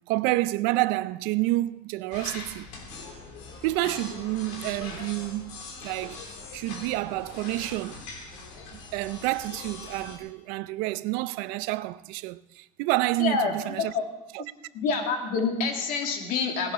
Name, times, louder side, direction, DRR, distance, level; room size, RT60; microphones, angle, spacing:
voice 1, 0.1-2.7 3.6-8.1 8.9-13.9 14.3-14.4, right 18 dB, 75° right, 0.5 m, -29 dB
sound 1, 2.1-10.2, left 3 dB, 85° left, 3.0 m, -42 dB
voice 2, 13.2-14.0 14.7-16.7, left 5 dB, 65° left, 2.5 m, -27 dB
18.0 x 11.5 x 4.3 m
supercardioid pair, 110°, 16 cm